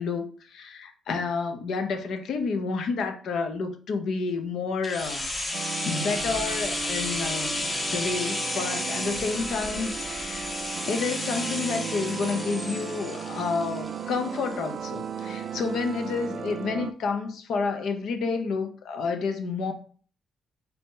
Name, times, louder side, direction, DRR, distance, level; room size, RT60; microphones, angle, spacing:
voice 1, 0.0-10.5 10.9-19.7, left 4 dB, 70° left, 0.7 m, -30 dB
sound 1, 4.8-14.7 15.0-15.1, left 1 dB, 20° left, 0.8 m, -32 dB
sound 2, 5.5-16.9, right 7 dB, 55° right, 0.3 m, -36 dB
4.0 x 2.8 x 3.7 m
cardioid pair, 90°, 0 cm